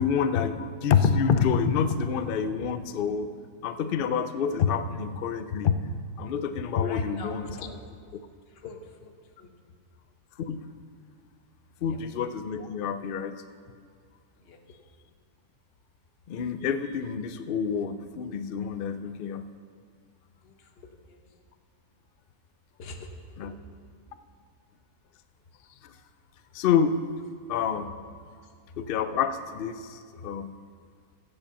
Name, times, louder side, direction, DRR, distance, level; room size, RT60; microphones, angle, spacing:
voice 1, 0.0-3.3 3.6-5.8 6.2-7.5 10.4-10.6 11.8-13.4 16.3-19.5 23.4-23.5 25.8-25.9 26.5-27.0 27.5-27.9 28.8-30.6, left 7 dB, 85° left, 10 dB, 0.4 m, -27 dB
voice 2, 6.8-7.8 8.5-9.5 11.8-12.0 14.4-14.8 18.9-19.2 20.4-21.2 22.8-23.1 24.1-24.2 28.3-28.5, left 4 dB, 45° left, 4 dB, 1.1 m, -45 dB
16.0 x 5.4 x 7.0 m, 2.1 s
omnidirectional pair, 1.6 m